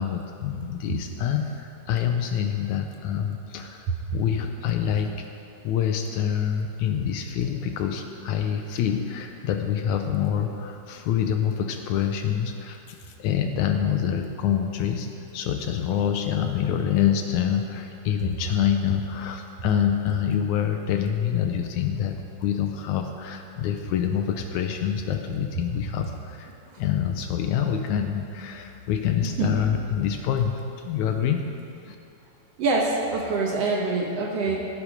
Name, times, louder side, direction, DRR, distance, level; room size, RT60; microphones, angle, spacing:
voice 1, 0.0-3.9 4.1-5.2 5.6-12.8 13.2-15.1 15.3-22.1 22.4-26.5 26.8-30.5 30.9-31.5 31.9-32.0, left 9 dB, 80° left, 5 dB, 1.9 m, -26 dB
voice 2, 32.6-34.7, right 3 dB, 65° right, 0 dB, 1.8 m, -25 dB
17.5 x 8.3 x 5.1 m, 2.7 s
omnidirectional pair, 3.7 m